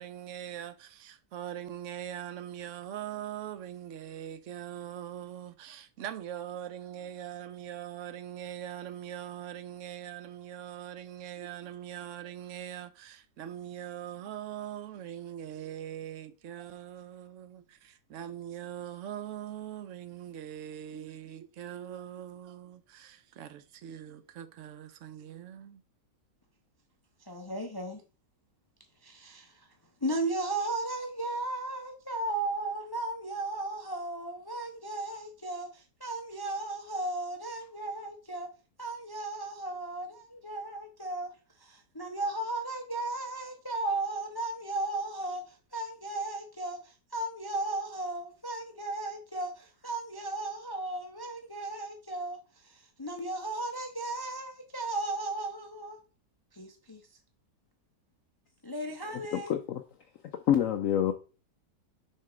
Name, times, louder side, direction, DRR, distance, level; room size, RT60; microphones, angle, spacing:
voice 1, 0.0-25.8, right 10 dB, 65° right, 0.8 m, -42 dB
voice 2, 27.3-28.0 29.0-29.7 30.0-38.5 38.8-41.3 41.6-52.4 52.6-56.0 56.5-57.0 58.6-59.5, right 2 dB, 30° left, 0.4 m, -35 dB
voice 3, 59.1-59.8 60.3-61.1, left 10 dB, 65° left, 0.8 m, -27 dB
6.5 x 3.6 x 4.9 m
omnidirectional pair, 1.8 m